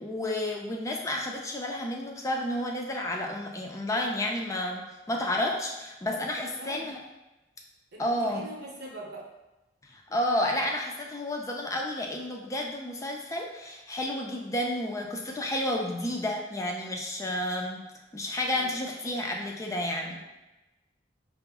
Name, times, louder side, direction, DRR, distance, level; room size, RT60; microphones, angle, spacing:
voice 1, 0.0-7.0 8.0-8.5 9.9-17.8 18.1-20.2, left 1 dB, 20° left, 1 dB, 0.4 m, -31 dB
voice 2, 6.0-6.8 7.9-9.3 18.5-18.8, right 2 dB, 65° right, -2 dB, 0.9 m, -44 dB
4.7 x 2.0 x 3.5 m, 1.0 s
head